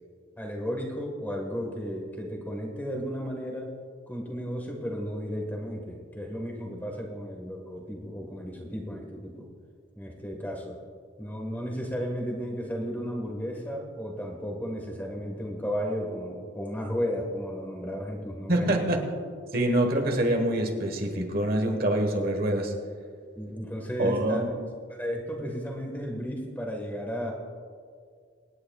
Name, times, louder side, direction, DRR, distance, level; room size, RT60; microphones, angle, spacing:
voice 1, 0.4-3.7 4.1-9.5 9.9-10.8 11.2-18.9 23.4-24.4 24.9-27.3, equal, 10° left, 1 dB, 1.4 m, -34 dB
voice 2, 18.5-19.1 19.5-22.7 24.0-24.5, right 1 dB, 50° right, 3 dB, 1.3 m, -25 dB
25.5 x 9.8 x 2.4 m, 2.1 s
head